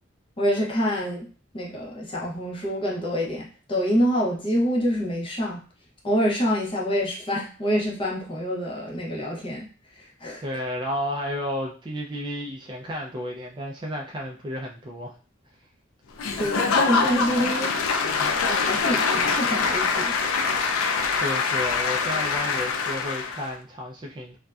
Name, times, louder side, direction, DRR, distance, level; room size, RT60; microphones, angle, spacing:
voice 1, 0.4-1.3 1.5-5.6 6.0-9.7 9.9-10.4 16.4-17.7 18.2-20.1, equal, 25° left, -3 dB, 0.7 m, -26 dB
voice 2, 10.4-15.1 20.8-24.4, left 1 dB, 25° right, -1 dB, 0.3 m, -32 dB
Applause / Crowd, 16.2-23.5, left 5 dB, 90° left, 0.4 m, -24 dB
2.5 x 2.1 x 2.2 m, 0.38 s
head